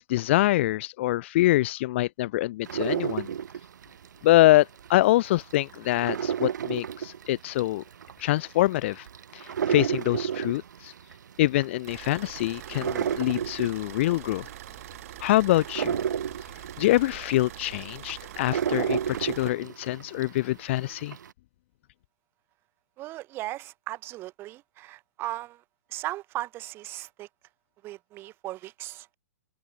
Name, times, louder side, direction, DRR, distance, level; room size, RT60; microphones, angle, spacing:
voice 1, 0.0-3.3 4.2-7.8 8.2-9.1 9.3-10.9 11.4-14.5 15.2-16.0 16.8-21.2, left 16 dB, 40° left, 0.5 m, -25 dB
sound 1, 2.6-4.9 5.2-20.4 20.8-21.3, right 8 dB, 90° right, 0.7 m, -31 dB
sound 2, 11.9-19.5, right 14 dB, 50° right, 1.4 m, -44 dB
voice 2, 23.0-25.6 25.9-27.3 27.8-29.2, right 16 dB, 25° right, 2.5 m, -37 dB
hypercardioid pair, 160°, 10 cm